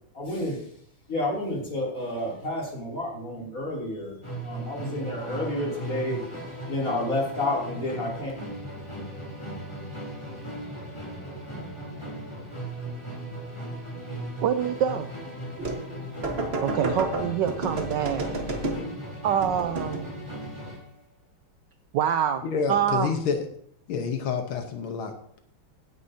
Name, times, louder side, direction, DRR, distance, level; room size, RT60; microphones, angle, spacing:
voice 1, 0.1-0.6 1.1-4.1 4.4-8.3, left 1 dB, 35° left, -3 dB, 3.4 m, -30 dB
Musical instrument, 4.2-20.9, right 1 dB, 10° left, 3.2 m, -37 dB
voice 2, 14.4-15.1 16.6-18.3 19.2-20.1 21.9-22.4 22.7-23.2, right 9 dB, 75° right, 9 dB, 1.0 m, -25 dB
sound 1, 15.6-15.9 16.2-19.0 19.4-20.1, right 2 dB, 35° right, 1.2 m, -31 dB
voice 3, 22.4-23.5 23.9-25.4, left 6 dB, 70° left, 6 dB, 1.8 m, -28 dB
16.5 x 9.4 x 2.8 m, 0.64 s
omnidirectional pair, 2.4 m